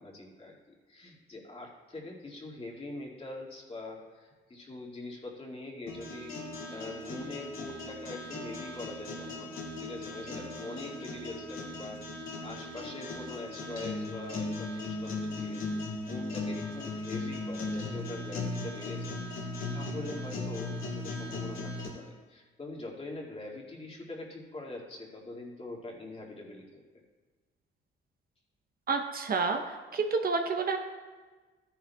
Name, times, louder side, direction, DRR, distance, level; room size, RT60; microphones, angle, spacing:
voice 1, 0.0-6.4 6.7-15.6 16.0-26.8, left 2 dB, 30° left, -2 dB, 2.2 m, -43 dB
sound 1, 5.9-21.9, left 2 dB, 80° left, 2.6 m, -37 dB
voice 2, 28.9-30.8, right 4 dB, 50° right, 4 dB, 0.8 m, -29 dB
13.0 x 10.5 x 2.3 m, 1.3 s
cardioid pair, 90°, 20 cm